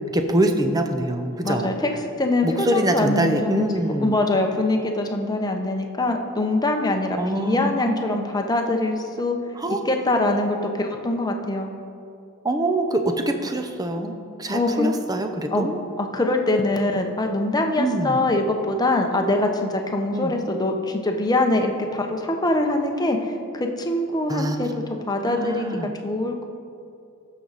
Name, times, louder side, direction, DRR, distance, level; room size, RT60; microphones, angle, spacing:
voice 1, 0.1-1.7 2.4-4.2 7.2-8.2 9.6-9.9 12.4-15.8 17.8-18.2 20.1-20.3 24.3-24.6 25.1-25.9, right 1 dB, 20° right, 6 dB, 0.7 m, -24 dB
voice 2, 1.4-1.9 2.2-3.7 4.0-9.4 9.7-11.7 14.5-14.9 15.5-15.7 16.0-25.7 26.0-26.5, left 2 dB, 20° left, 3 dB, 0.8 m, -23 dB
15.5 x 6.4 x 4.1 m, 2.4 s
head